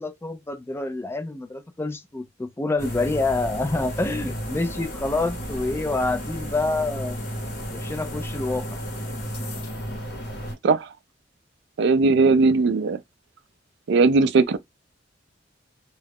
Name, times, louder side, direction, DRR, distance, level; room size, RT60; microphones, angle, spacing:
voice 1, 0.0-7.2 7.7-8.7, left 2 dB, 15° left, 0.3 m, -27 dB
sound 1, 2.8-10.5, equal, 60° left, 0.9 m, -33 dB
voice 2, 11.8-13.0 13.9-14.6, right 3 dB, 65° right, 0.4 m, -18 dB
2.3 x 2.0 x 3.3 m
head